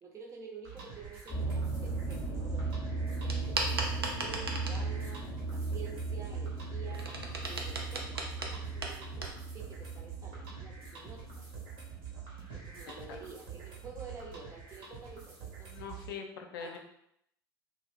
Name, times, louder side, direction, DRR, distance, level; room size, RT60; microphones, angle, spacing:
voice 1, 0.0-9.2 9.5-11.5 12.5-15.9 16.6-16.8, right 4 dB, 25° right, -1 dB, 0.7 m, -49 dB
sound 1, 0.6-16.1, right 7 dB, 55° right, 0.8 m, -47 dB
sound 2, 1.3-13.6 14.1-14.5 15.1-15.2 15.5-15.6, right 3 dB, 20° left, 0.6 m, -37 dB
sound 3, 3.3-4.9 6.4-9.4, right 2 dB, 90° right, 0.4 m, -37 dB
voice 2, 15.7-16.8, left 6 dB, 65° left, 4 dB, 0.4 m, -42 dB
2.3 x 2.0 x 3.2 m, 0.75 s
figure-of-eight pair, 80°, 12 cm